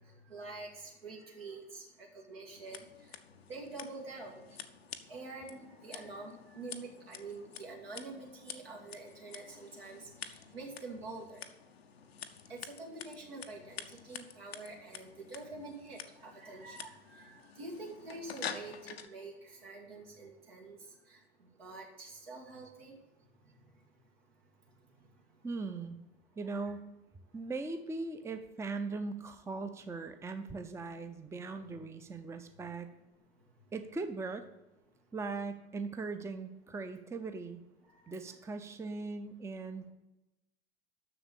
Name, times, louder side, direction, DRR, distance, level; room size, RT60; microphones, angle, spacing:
voice 1, 0.3-1.8 2.1-2.9 3.5-4.4 5.1-11.4 12.5-18.7 19.0-20.8 21.6-23.0, right 3 dB, 70° right, -2 dB, 1.8 m, -46 dB
Scissors, 2.5-19.1, left 7 dB, 80° left, 0.6 m, -49 dB
voice 2, 25.4-26.0 26.4-26.9 27.3-32.9 33.7-34.5 35.1-37.6 38.1-39.9, right 3 dB, 10° right, 8 dB, 0.6 m, -39 dB
6.9 x 6.4 x 6.8 m, 0.96 s
figure-of-eight pair, 75°, 30 cm